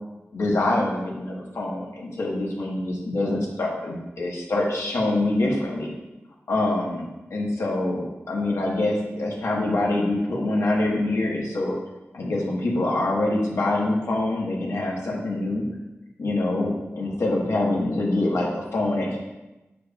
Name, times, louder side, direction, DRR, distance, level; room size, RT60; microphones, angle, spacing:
voice 1, 0.3-5.9 6.5-11.8 12.1-15.6 16.2-19.2, left 2 dB, 85° left, -3 dB, 1.5 m, -25 dB
7.4 x 7.0 x 2.4 m, 1.0 s
wide cardioid pair, 100°, 5 cm